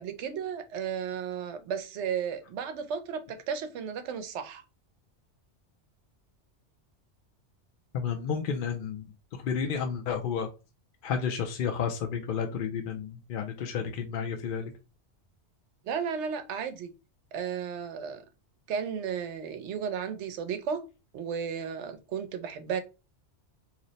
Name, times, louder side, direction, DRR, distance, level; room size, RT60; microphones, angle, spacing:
voice 1, 0.0-4.6 15.9-16.9 17.3-18.2 18.7-20.8 21.1-22.8, right 7 dB, 80° right, 0.9 m, -34 dB
voice 2, 7.9-9.0 9.3-10.5 11.0-14.7, left 7 dB, 60° left, 0.6 m, -31 dB
3.0 x 2.0 x 3.9 m
omnidirectional pair, 1.2 m